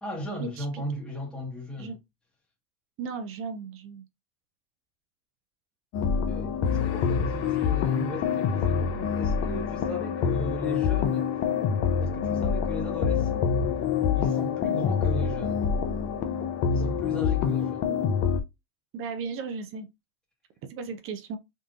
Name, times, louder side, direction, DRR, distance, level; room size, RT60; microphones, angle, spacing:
voice 1, 0.0-2.0 6.3-11.3 12.0-13.6 14.1-15.7 16.7-17.9, equal, ahead, 1.0 m, -37 dB
voice 2, 3.0-4.0 17.9-18.1 18.9-19.9 20.7-21.4, right 5 dB, 30° right, 0.5 m, -36 dB
sound 1, 5.9-18.4, left 7 dB, 35° left, 0.6 m, -26 dB
3.7 x 2.5 x 2.4 m
hypercardioid pair, 105°, 44 cm